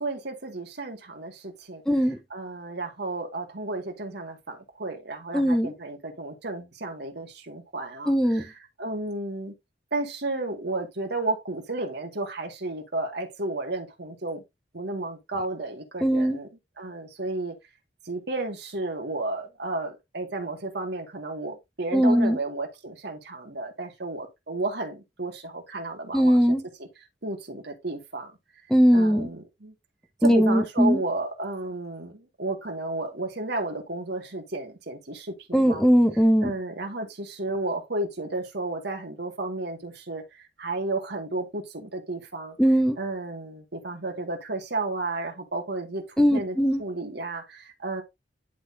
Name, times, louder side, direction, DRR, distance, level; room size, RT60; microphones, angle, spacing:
voice 1, 0.0-1.8 2.3-9.5 9.9-14.4 14.7-16.5 16.8-17.5 18.0-26.9 27.2-28.3 28.9-29.7 30.2-35.8 36.4-42.6 43.0-48.0, right 2 dB, 65° right, 2.1 m, -33 dB
voice 2, 1.9-2.2 5.3-5.7 8.1-8.4 16.0-16.4 21.9-22.4 26.1-26.6 28.7-29.3 30.2-31.0 35.5-36.5 42.6-43.0 46.2-46.8, equal, 5° left, 0.8 m, -20 dB
11.0 x 3.9 x 2.7 m
head